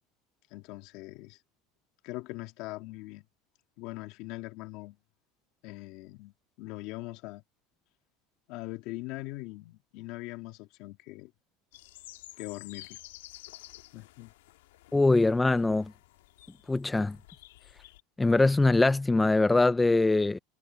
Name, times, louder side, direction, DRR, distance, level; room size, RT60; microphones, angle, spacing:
voice 1, 0.5-1.4 2.0-3.2 3.8-5.0 5.6-7.4 8.5-11.3 12.4-13.0 13.9-14.3, left 19 dB, 45° left, 2.4 m, -41 dB
sound 1, 11.7-18.0, left 16 dB, 90° left, 1.5 m, -51 dB
voice 2, 14.9-15.9 16.7-17.2 18.2-20.4, left 2 dB, 5° left, 0.4 m, -23 dB
supercardioid pair, 175°, 0 cm